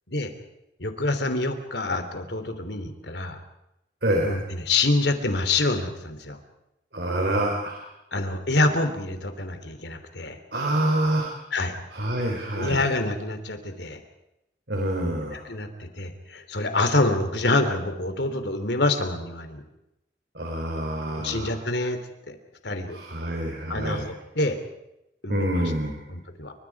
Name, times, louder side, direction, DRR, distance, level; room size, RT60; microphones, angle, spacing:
voice 1, 0.8-3.4 4.2-6.4 8.1-10.4 11.5-11.8 12.6-14.0 15.3-19.6 21.2-22.0 22.3-22.4 22.6-23.0 23.7-24.6 25.2-25.6 26.1-26.5, left 2 dB, 70° left, 8 dB, 3.2 m, -26 dB
voice 2, 4.0-4.4 6.9-7.8 10.5-11.3 11.9-12.9 14.7-15.4 20.3-21.5 22.9-24.0 25.3-26.0, right 1 dB, 60° right, 1 dB, 3.9 m, -26 dB
29.0 x 25.0 x 4.8 m, 0.89 s
head